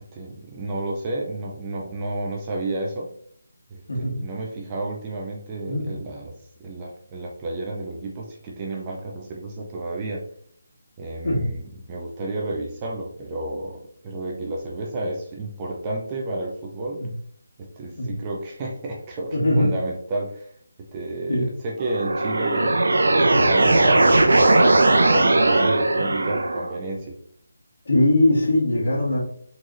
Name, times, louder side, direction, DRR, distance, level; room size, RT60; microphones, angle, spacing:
voice 1, 0.1-3.1 3.7-6.3 6.6-10.2 11.0-17.0 17.6-20.5 20.9-27.2, right 2 dB, 15° right, -1 dB, 0.5 m, -31 dB
voice 2, 19.3-19.7 21.3-21.4 23.2-23.4 27.9-29.2, left 1 dB, 60° left, -3 dB, 1.9 m, -21 dB
sound 1, 21.8-26.8, right 2 dB, 75° right, 0.6 m, -18 dB
4.7 x 3.9 x 2.5 m, 0.63 s
figure-of-eight pair, 175°, 0 cm